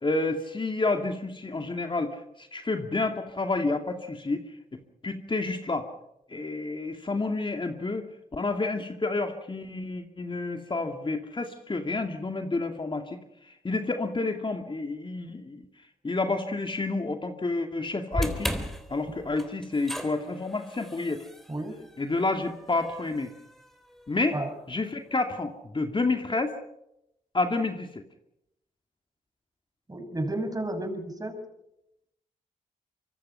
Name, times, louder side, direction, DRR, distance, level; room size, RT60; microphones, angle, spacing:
voice 1, 0.0-4.4 5.0-5.9 6.3-8.0 8.3-13.2 13.4-15.6 16.0-18.5 18.9-21.2 22.0-23.3 24.1-24.4 24.7-26.6 27.3-28.0, left 3 dB, 35° left, 5 dB, 2.4 m, -29 dB
sound 1, 18.1-24.4, equal, ahead, 3.8 m, -37 dB
voice 2, 21.5-21.9 24.3-24.5 29.9-31.5, right 1 dB, 25° right, 6 dB, 6.1 m, -32 dB
25.0 x 23.5 x 5.7 m, 0.84 s
supercardioid pair, 50°, 15 cm